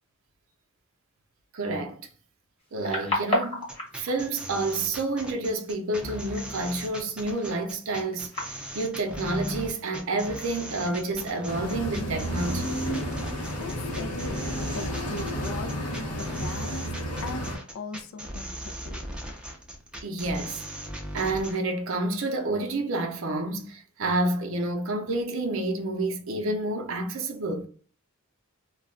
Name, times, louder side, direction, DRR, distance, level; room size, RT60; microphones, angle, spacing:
voice 1, 1.5-2.1 2.7-3.7 4.0-12.8 20.0-20.6 21.1-27.7, right 2 dB, 60° right, 0.5 m, -29 dB
sound 1, 2.6-12.9, left 1 dB, 25° left, 1.0 m, -37 dB
sound 2, 3.6-21.6, equal, 5° right, 0.4 m, -39 dB
sound 3, 11.5-17.6, equal, 90° left, 0.8 m, -31 dB
voice 2, 13.3-17.5 17.7-19.0, left 3 dB, 60° left, 0.4 m, -40 dB
2.2 x 2.2 x 3.6 m
head